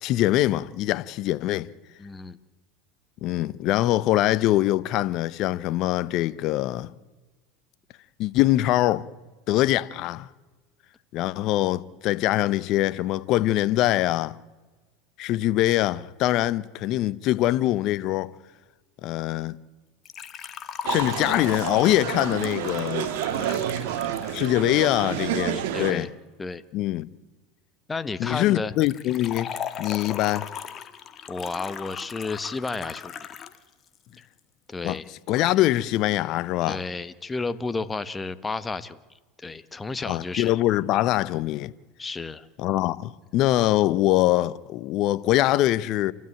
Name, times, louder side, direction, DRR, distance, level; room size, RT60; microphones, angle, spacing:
voice 1, 0.0-1.7 3.2-6.9 8.2-9.1 9.5-10.3 11.1-14.4 15.2-18.3 19.0-19.6 20.9-23.1 24.3-26.1 26.7-27.1 28.2-30.5 34.8-35.0 35.3-36.8 40.0-41.7 42.6-46.1, left 15 dB, 55° left, 0.8 m, -23 dB
voice 2, 2.0-2.4 23.3-23.7 25.5-26.1 26.4-26.6 27.9-28.7 31.3-33.4 34.7-35.1 36.7-39.0 39.4-40.5 42.0-42.5, left 3 dB, 15° left, 1.1 m, -32 dB
Liquid, 20.0-25.0 28.8-33.6 33.9-34.0 34.9-35.0, left 8 dB, 35° left, 1.4 m, -37 dB
sound 1, 20.8-25.9, right 10 dB, 75° right, 1.9 m, -29 dB
28.5 x 13.0 x 9.1 m
hypercardioid pair, 100°, 0 cm